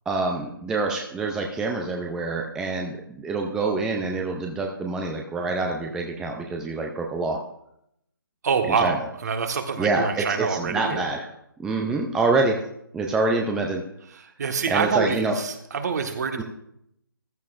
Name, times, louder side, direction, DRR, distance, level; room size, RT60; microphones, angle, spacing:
voice 1, 0.1-7.4 8.7-9.0 9.8-11.3 11.6-12.6 12.9-13.8 14.7-15.4 16.4-16.5, right 3 dB, 5° right, 1 dB, 0.5 m, -26 dB
voice 2, 8.4-11.1 14.1-16.4, right 5 dB, 50° right, 6 dB, 1.4 m, -26 dB
14.5 x 12.5 x 2.5 m, 0.77 s
figure-of-eight pair, 155°, 12 cm